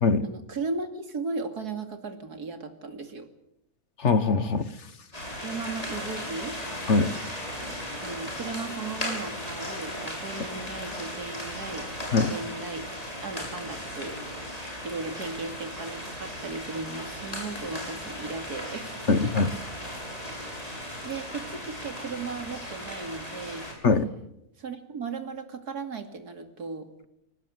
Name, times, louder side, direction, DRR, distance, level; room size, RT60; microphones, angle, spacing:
voice 1, 0.2-3.3 5.4-6.5 8.0-12.9 13.2-14.2 14.8-19.3 21.0-23.7 24.6-26.9, right 4 dB, 80° right, 7 dB, 3.1 m, -36 dB
voice 2, 4.0-4.7 6.9-7.1 12.1-12.3 19.1-19.5 23.8-24.1, left 4 dB, 50° left, 13 dB, 1.5 m, -22 dB
sound 1, 5.1-23.7, equal, 25° left, 7.1 m, -36 dB
23.5 x 18.5 x 9.3 m, 0.83 s
omnidirectional pair, 1.6 m